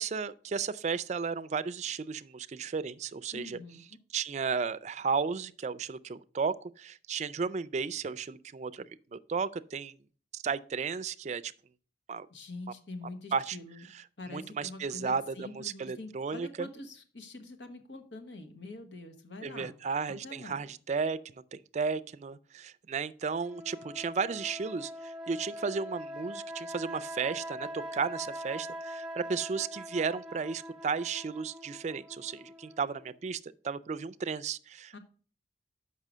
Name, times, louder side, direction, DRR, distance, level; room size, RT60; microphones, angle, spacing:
voice 1, 0.0-3.6 4.1-10.0 10.3-11.5 12.1-12.3 13.3-13.6 13.9-16.7 19.4-35.0, right 5 dB, 40° right, 0.3 m, -34 dB
voice 2, 3.3-4.0 12.3-13.9 14.2-19.7 20.1-20.6 34.9-35.0, left 2 dB, 90° left, 1.2 m, -45 dB
sound 1, 23.4-33.1, equal, 5° right, 0.8 m, -43 dB
6.6 x 5.5 x 6.1 m
head